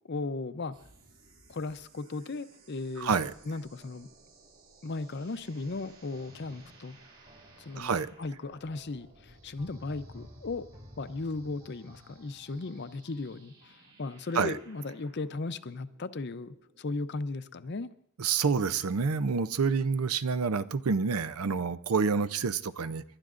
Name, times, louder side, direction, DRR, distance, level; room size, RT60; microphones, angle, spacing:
voice 1, 0.1-0.8 1.5-3.1 3.5-4.1 4.8-7.0 7.6-10.7 11.0-17.9, left 3 dB, 50° left, 0.6 m, -36 dB
sound 1, 0.7-17.5, right 3 dB, 70° right, 7.6 m, -60 dB
voice 2, 3.0-3.3 7.8-8.1 14.3-14.6 18.2-23.0, right 5 dB, 90° right, 0.6 m, -28 dB
sound 2, 3.8-14.3, equal, 35° right, 2.3 m, -56 dB
29.5 x 12.0 x 2.5 m
head